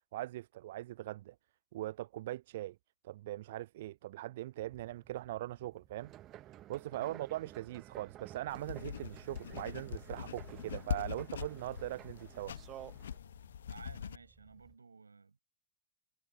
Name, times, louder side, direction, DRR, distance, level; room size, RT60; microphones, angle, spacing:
voice 1, 0.1-1.4 1.7-2.8 3.0-6.1 6.7-12.6, right 15 dB, 55° right, 0.3 m, -41 dB
sound 1, 4.6-14.8, right 6 dB, 20° right, 6.9 m, -66 dB
sound 2, 6.0-13.2, right 14 dB, 35° right, 0.9 m, -53 dB
sound 3, 8.5-14.2, left 9 dB, 65° left, 0.9 m, -43 dB
voice 2, 13.7-15.4, right 4 dB, 75° right, 5.2 m, -54 dB
figure-of-eight pair, 90°, 0 cm